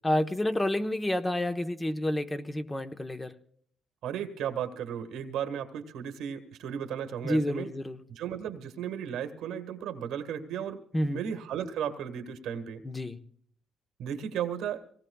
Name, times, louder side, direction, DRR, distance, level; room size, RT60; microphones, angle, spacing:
voice 1, 0.0-3.3 7.2-8.0 10.9-11.3 12.8-13.2, left 1 dB, 15° left, 7 dB, 1.1 m, -29 dB
voice 2, 4.0-7.7 8.1-12.8 14.0-14.8, right 8 dB, 85° right, 8 dB, 1.6 m, -35 dB
25.0 x 18.5 x 2.3 m, 0.62 s
cardioid pair, 90°, 0 cm